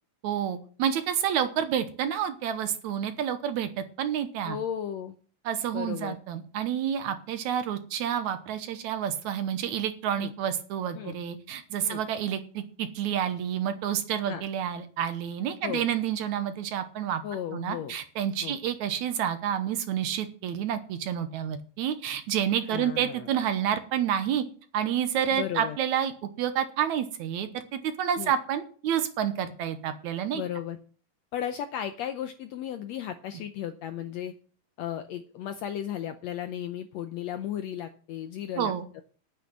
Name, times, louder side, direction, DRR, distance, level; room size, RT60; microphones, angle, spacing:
voice 1, 0.2-4.6 5.5-17.2 17.5-24.5 24.7-30.4 38.6-38.9, right 9 dB, 70° right, 10 dB, 2.1 m, -29 dB
voice 2, 4.5-5.2 5.7-6.1 10.1-10.3 10.9-11.2 11.8-12.0 14.3-14.4 15.6-15.9 17.2-18.0 18.4-18.6 22.7-23.3 25.3-25.8 28.2-28.3 30.3-30.8 31.3-34.3 34.8-39.0, left 10 dB, 75° left, 8 dB, 1.6 m, -35 dB
9.1 x 8.6 x 7.6 m, 0.43 s
omnidirectional pair, 3.8 m